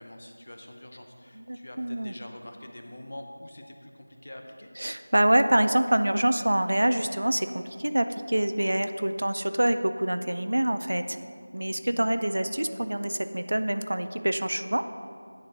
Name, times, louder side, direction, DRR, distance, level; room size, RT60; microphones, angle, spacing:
voice 1, 0.0-4.7, left 1 dB, 40° left, 4 dB, 0.7 m, -45 dB
voice 2, 1.5-2.1 4.8-11.2 11.5-14.8, right 1 dB, 55° right, 9 dB, 0.4 m, -26 dB
9.5 x 3.7 x 5.4 m, 2.2 s
figure-of-eight pair, 170°, 0 cm